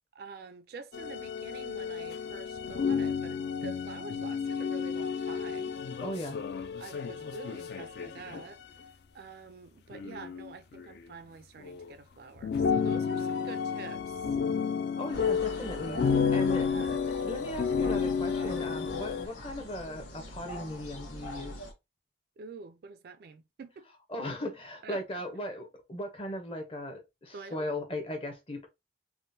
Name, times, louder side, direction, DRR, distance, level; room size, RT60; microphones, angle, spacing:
voice 1, 0.2-5.7 6.8-8.6 9.1-14.2 16.5-17.0 22.4-23.9 24.8-25.0 27.3-27.7, right 4 dB, 55° right, 0.3 m, -47 dB
sound 1, 0.9-8.5 9.9-10.5 10.8-10.9 11.6-11.9 12.4-19.3, left 6 dB, 55° left, 0.3 m, -31 dB
voice 2, 6.0-6.4 15.0-21.6 24.1-28.7, left 1 dB, 30° left, 0.7 m, -38 dB
sound 2, 15.1-21.7, equal, 80° left, 0.9 m, -43 dB
3.6 x 2.1 x 2.6 m
head